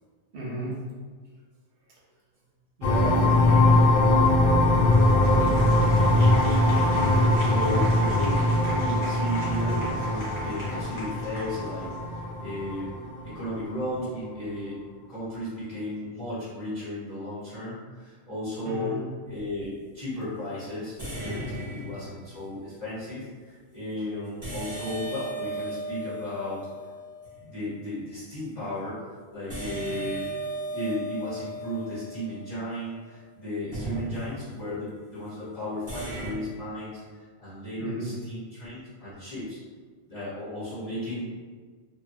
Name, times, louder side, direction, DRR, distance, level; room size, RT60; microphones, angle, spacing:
voice 1, 0.3-0.8 2.8-3.9 4.5-4.6 18.6-19.0 37.8-38.2, right 1 dB, 55° right, -3 dB, 0.8 m, -34 dB
sound 1, 2.8-13.3, left 1 dB, 60° left, 0.6 m, -22 dB
Applause, 4.6-12.2, left 1 dB, 80° left, 1.2 m, -40 dB
voice 2, 7.3-13.0 13.2-14.8 15.1-19.0 19.3-26.6 27.4-29.0 29.3-30.3 30.7-39.6 40.1-41.3, left 1 dB, 30° left, -12 dB, 0.9 m, -35 dB
sound 2, 19.2-19.6 21.0-22.5 24.4-27.4 29.5-32.9 33.7-34.8 35.9-36.3, right 1 dB, 20° right, 0.8 m, -36 dB
2.6 x 2.3 x 2.6 m, 1.5 s
omnidirectional pair, 1.3 m